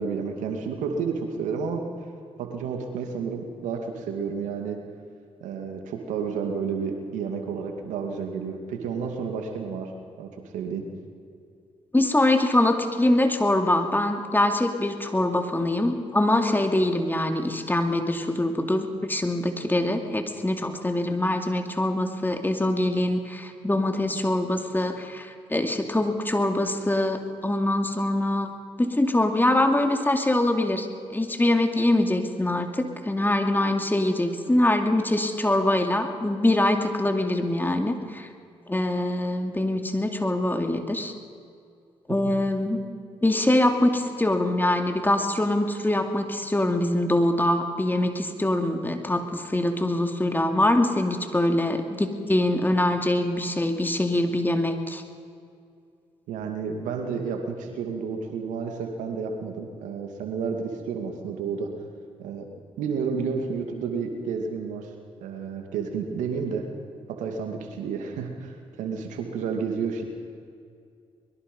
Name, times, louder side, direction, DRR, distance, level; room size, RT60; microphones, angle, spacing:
voice 1, 0.0-1.8 2.4-4.8 5.4-9.9 10.2-10.8 56.3-61.7 62.2-62.5 62.8-64.9 65.2-66.6 67.1-70.0, right 5 dB, 80° right, 4 dB, 2.3 m, -31 dB
voice 2, 11.9-28.5 28.8-38.3 38.7-41.1 42.1-42.8 43.2-55.0, left 1 dB, 15° left, 5 dB, 2.7 m, -24 dB
23.5 x 22.0 x 5.5 m, 2.4 s
supercardioid pair, 50°, 12 cm